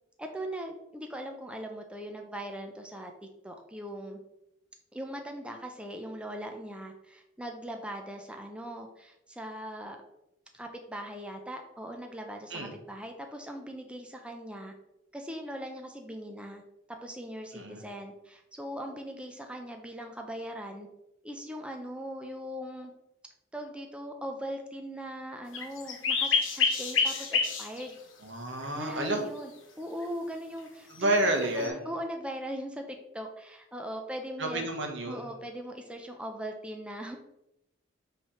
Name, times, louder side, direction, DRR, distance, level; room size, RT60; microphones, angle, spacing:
voice 1, 0.2-3.1 3.4-4.2 4.9-10.0 10.5-14.7 15.1-16.6 17.0-20.9 21.2-22.9 23.5-28.0 28.7-29.5 29.8-31.1 31.5-34.7 35.1-37.2, equal, 5° right, 3 dB, 0.6 m, -40 dB
sound 1, 25.5-27.9 28.6-28.7 31.0-31.7, left 5 dB, 80° left, 1.3 m, -28 dB
voice 2, 28.2-29.2 30.9-31.8 34.4-35.2, right 1 dB, 70° right, 3 dB, 1.3 m, -30 dB
5.6 x 3.3 x 5.6 m, 0.86 s
head